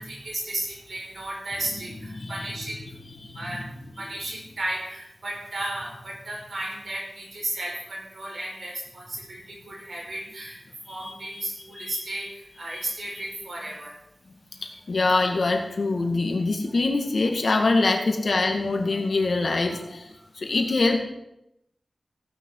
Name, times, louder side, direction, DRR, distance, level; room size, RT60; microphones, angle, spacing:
voice 1, 0.0-2.8 3.3-3.6 4.0-10.6 10.9-14.0, right 1 dB, 70° right, -2 dB, 4.9 m, -34 dB
voice 2, 2.2-2.5 3.3-3.4 11.0-11.1 11.8-11.9 12.7-12.8 14.9-20.0 20.4-21.0, left 3 dB, 70° left, 3 dB, 1.9 m, -24 dB
16.0 x 9.5 x 3.9 m, 0.84 s
wide cardioid pair, 70°, 0 cm